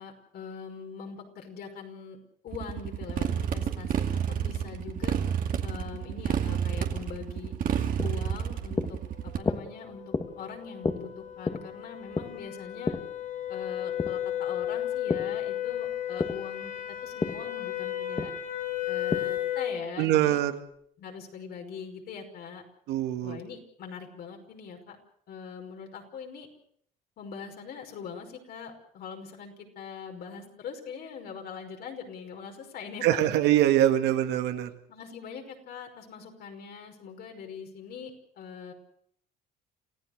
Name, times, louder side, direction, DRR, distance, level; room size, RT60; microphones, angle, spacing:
voice 1, 0.0-2.2 2.4-5.2 5.6-7.5 8.0-9.0 9.2-13.0 13.5-18.3 18.9-20.4 21.0-22.6 23.2-25.0 25.3-26.5 27.2-33.2 34.9-38.7, left 6 dB, 70° left, 3 dB, 5.5 m, -42 dB
Motorcycle, 2.5-9.4, right 8 dB, 55° right, 2.4 m, -30 dB
sound 1, 7.4-15.4 15.7-19.5, left 4 dB, 25° left, 1.9 m, -34 dB
sound 2, 9.9-19.8, left 11 dB, 50° left, 5.8 m, -34 dB
voice 2, 20.0-20.6 22.9-23.4 33.0-34.7, right 12 dB, 85° right, 7 dB, 2.0 m, -23 dB
28.5 x 15.5 x 6.6 m, 0.65 s
cardioid pair, 110°, 17 cm